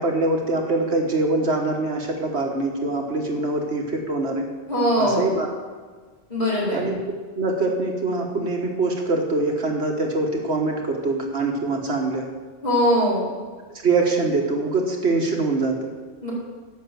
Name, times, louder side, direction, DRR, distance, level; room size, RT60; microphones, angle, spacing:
voice 1, 0.0-4.5 5.0-5.5 6.7-7.0 7.3-12.2 13.8-15.9, right 3 dB, 75° right, 1 dB, 1.7 m, -23 dB
voice 2, 4.7-5.3 6.3-6.8 12.6-13.3 16.2-16.3, equal, 40° left, -8 dB, 4.3 m, -21 dB
10.5 x 6.2 x 7.6 m, 1.4 s
omnidirectional pair, 1.1 m